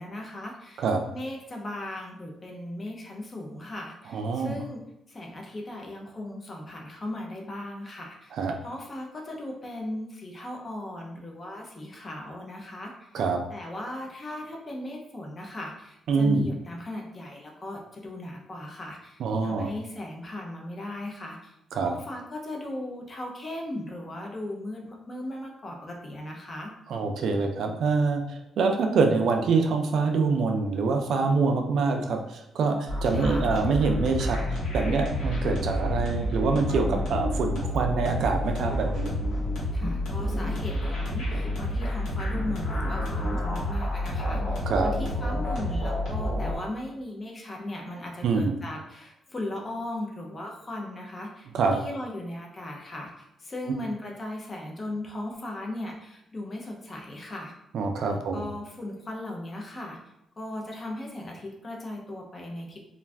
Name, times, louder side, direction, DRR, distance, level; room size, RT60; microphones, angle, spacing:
voice 1, 0.0-4.8 5.1-13.1 13.5-26.7 33.1-33.6 39.7-57.5 58.1-60.0 60.4-62.9, left 1 dB, 25° left, 0 dB, 0.5 m, -37 dB
voice 2, 4.1-4.5 8.3-8.5 13.1-13.4 16.1-16.5 19.2-19.7 21.7-21.9 26.9-34.4 34.7-39.2 44.7-44.9 48.2-48.5 51.5-51.8 57.7-58.4, right 4 dB, 65° right, 3 dB, 0.4 m, -25 dB
sound 1, 32.9-46.6, left 1 dB, 75° left, 1.3 m, -29 dB
2.4 x 2.3 x 3.2 m, 0.85 s
cardioid pair, 165°, 0 cm